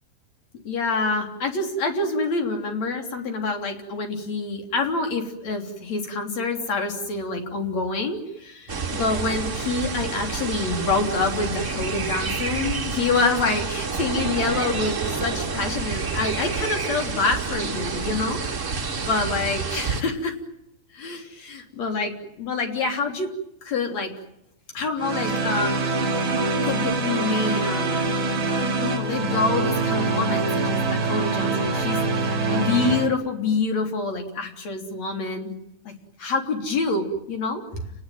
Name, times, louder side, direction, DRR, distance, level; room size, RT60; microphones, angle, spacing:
voice 1, 0.6-18.4 19.0-20.3 20.9-22.1 22.4-23.3 23.6-24.1 24.7-26.0 26.6-28.2 28.5-35.5 35.9-36.0 36.2-37.8, left 3 dB, 45° left, 4 dB, 4.2 m, -27 dB
sound 1, 8.7-20.0, right 4 dB, 65° right, 0.7 m, -29 dB
sound 2, 25.0-33.1, right 3 dB, 35° right, 2.8 m, -24 dB
29.5 x 20.0 x 9.3 m, 0.85 s
omnidirectional pair, 4.6 m